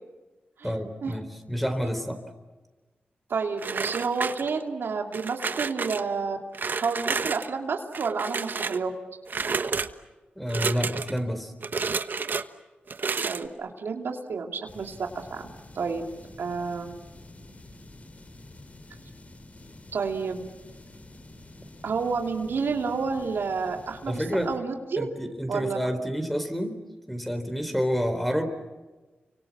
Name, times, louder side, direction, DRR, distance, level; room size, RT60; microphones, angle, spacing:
voice 1, 0.6-2.2 10.4-11.5 24.1-24.5 24.9-26.8 27.1-28.5, equal, ahead, 7 dB, 4.2 m, -29 dB
voice 2, 3.3-6.4 6.8-8.9 13.2-15.0 15.3-15.4 15.7-16.0 16.4-16.9 19.9-20.5 21.8-25.1 25.5-25.9, right 5 dB, 80° right, 3 dB, 2.7 m, -30 dB
sound 1, 3.6-4.7 5.1-6.0 6.5-7.5 7.9-8.8 9.3-9.9 10.5-11.2 11.6-12.4 12.9-13.5, right 4 dB, 60° right, 1.2 m, -30 dB
sound 2, 14.7-24.6, left 2 dB, 40° left, 2.7 m, -48 dB
29.5 x 25.0 x 7.4 m, 1.2 s
cardioid pair, 60°, 4 cm